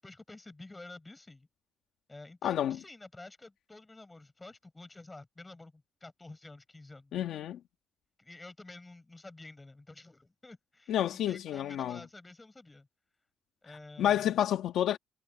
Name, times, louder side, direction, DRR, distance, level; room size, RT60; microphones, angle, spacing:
voice 1, 0.0-1.5 2.1-7.3 8.2-12.9 13.6-14.4, left 2 dB, 20° left, 7.4 m, -50 dB
voice 2, 2.4-2.8 7.1-7.6 10.9-12.0 14.0-15.0, left 11 dB, 75° left, 1.7 m, -29 dB
cardioid pair, 90°, 0 cm